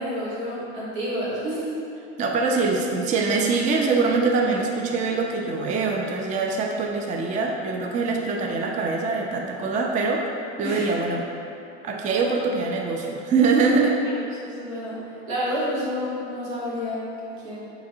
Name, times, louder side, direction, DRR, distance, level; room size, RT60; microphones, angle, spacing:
voice 1, 0.0-1.7 10.6-10.9 14.0-17.1 17.4-17.6, equal, 85° right, -7 dB, 1.4 m, -29 dB
voice 2, 2.2-10.3 10.6-11.3 11.8-14.0, right 4 dB, 25° right, 1 dB, 0.4 m, -23 dB
5.7 x 2.9 x 2.6 m, 2.7 s
hypercardioid pair, 90°, 33 cm